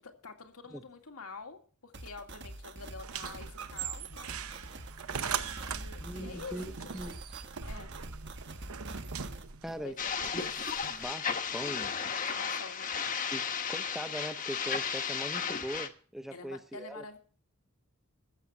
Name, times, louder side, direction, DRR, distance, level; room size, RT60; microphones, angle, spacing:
voice 1, 0.2-4.3 5.1-6.6 7.0-7.2 7.6-7.9 9.8-10.1 12.3-12.9 16.3-17.2, left 4 dB, 85° left, 2.1 m, -47 dB
sound 1, 1.9-9.4, right 2 dB, 55° right, 1.4 m, -45 dB
sound 2, 3.0-11.1, right 7 dB, 75° right, 0.9 m, -41 dB
voice 2, 6.0-7.2 9.6-10.0 10.3-10.4 10.9-11.9 13.3-17.0, equal, ahead, 0.8 m, -41 dB
sound 3, 10.0-15.9, left 6 dB, 40° left, 1.1 m, -34 dB
14.5 x 7.0 x 7.6 m
head